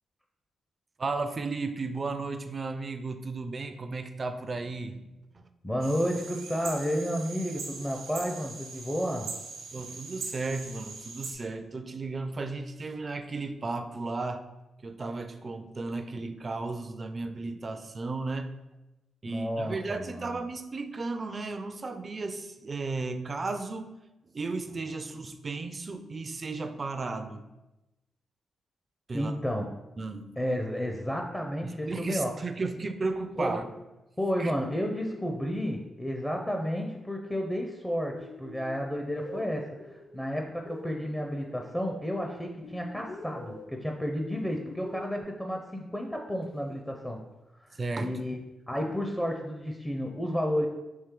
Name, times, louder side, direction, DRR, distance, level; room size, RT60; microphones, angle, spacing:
voice 1, 1.0-5.1 5.3-5.5 9.7-14.5 14.8-18.5 19.2-23.9 24.2-27.5 29.1-29.3 30.0-30.3 31.6-33.7 34.4-34.5 47.7-48.1, right 3 dB, 40° right, 9 dB, 0.4 m, -34 dB
voice 2, 5.6-9.3 19.3-20.4 29.1-29.7 30.4-32.3 33.4-33.5 34.2-47.2 47.6-48.4 48.7-50.7, equal, 15° left, 2 dB, 0.6 m, -31 dB
sound 1, 5.8-11.3, right 4 dB, 85° right, 0.9 m, -41 dB
sound 2, 38.2-41.9 42.6-45.2, left 2 dB, 70° left, 0.8 m, -46 dB
4.4 x 3.1 x 3.7 m, 1.0 s
cardioid pair, 65°, 0 cm